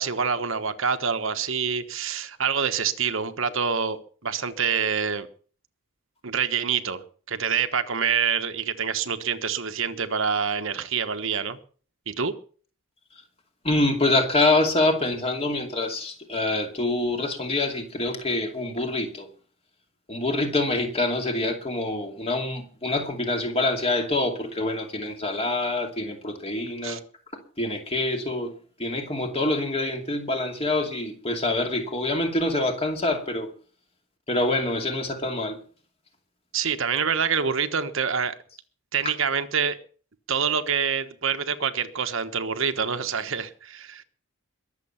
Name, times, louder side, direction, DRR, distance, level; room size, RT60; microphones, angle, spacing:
voice 1, 0.0-5.3 6.2-11.6 12.1-12.3 26.8-27.0 36.5-38.3 38.9-39.8 40.3-44.0, right 6 dB, 60° right, 1.2 m, -26 dB
voice 2, 13.6-19.3 20.1-27.0 27.6-28.5 28.8-33.5 34.3-35.6, left 2 dB, 25° left, 2.5 m, -25 dB
22.0 x 7.6 x 5.7 m
head